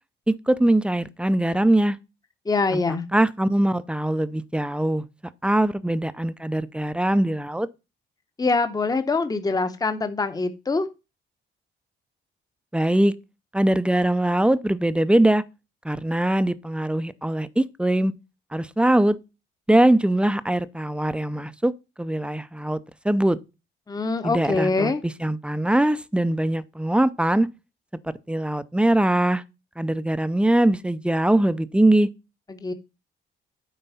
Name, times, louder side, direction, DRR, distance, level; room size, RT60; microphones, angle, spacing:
voice 1, 0.3-2.0 2.7-2.8 3.1-5.0 5.4-7.7 12.7-13.1 13.5-15.4 15.8-18.1 18.5-19.2 19.7-21.7 22.0-22.8 23.0-23.4 24.2-24.9 25.2-27.5 28.3-29.4 29.8-32.1, right 1 dB, 5° right, 0.5 m, -21 dB
voice 2, 2.5-3.1 8.4-10.9 23.9-25.0 32.5-32.7, left 3 dB, 20° left, 0.9 m, -24 dB
9.2 x 3.9 x 5.6 m
cardioid pair, 90°, 20 cm